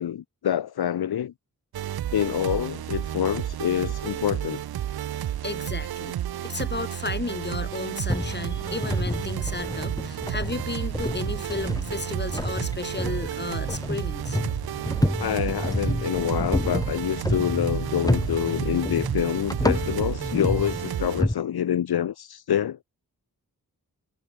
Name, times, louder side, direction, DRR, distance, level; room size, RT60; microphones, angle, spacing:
voice 1, 0.0-1.3 2.1-4.6 15.2-22.8, left 10 dB, 80° left, 0.8 m, -26 dB
sound 1, 1.7-21.2, right 11 dB, 80° right, 0.6 m, -31 dB
voice 2, 5.4-6.1 6.4-14.4, left 3 dB, 30° left, 1.7 m, -33 dB
sound 2, 8.1-21.3, left 1 dB, 10° left, 2.0 m, -30 dB
cardioid pair, 60°, 37 cm